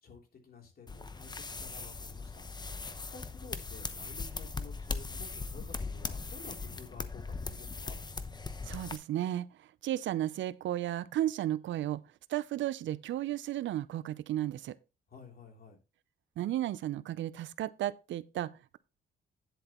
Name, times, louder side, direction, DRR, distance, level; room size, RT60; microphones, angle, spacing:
voice 1, 0.0-8.0 15.1-15.8, left 5 dB, 50° left, 3.3 m, -52 dB
sound 1, 0.9-9.0, left 4 dB, 20° left, 0.9 m, -39 dB
voice 2, 8.6-12.0 12.3-14.8 16.4-18.8, right 13 dB, 70° right, 0.6 m, -34 dB
10.0 x 7.8 x 3.0 m
cardioid pair, 90°, 20 cm